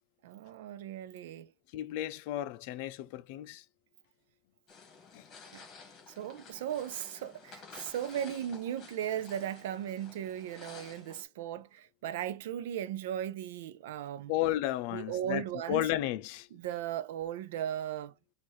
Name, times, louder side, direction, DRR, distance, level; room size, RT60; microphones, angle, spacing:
voice 1, 0.2-1.5 5.5-5.6 6.1-14.3 14.9-15.8 16.5-18.1, right 10 dB, 85° right, 0.5 m, -37 dB
voice 2, 1.7-3.6 5.1-5.2 14.3-16.5, left 14 dB, 55° left, 0.5 m, -33 dB
sound 1, 4.7-11.2, left 5 dB, 30° left, 1.8 m, -52 dB
4.2 x 2.5 x 4.7 m
supercardioid pair, 170°, 0 cm